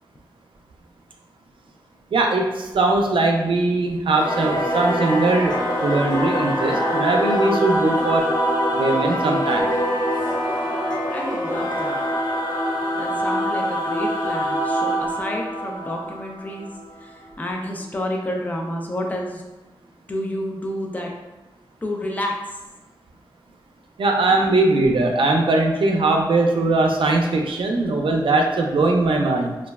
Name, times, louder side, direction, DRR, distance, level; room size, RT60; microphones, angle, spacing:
voice 1, 2.1-8.4 8.7-9.7 24.0-29.6, right 2 dB, 80° right, 2 dB, 0.4 m, -20 dB
Singing / Musical instrument, 4.1-17.0, equal, 50° left, 0.9 m, -24 dB
voice 2, 11.0-12.0 13.0-16.7 17.0-19.4 20.1-21.1 21.8-22.6, left 1 dB, 20° left, 0 dB, 0.4 m, -30 dB
3.0 x 2.3 x 2.3 m, 1.1 s
wide cardioid pair, 120°, 9 cm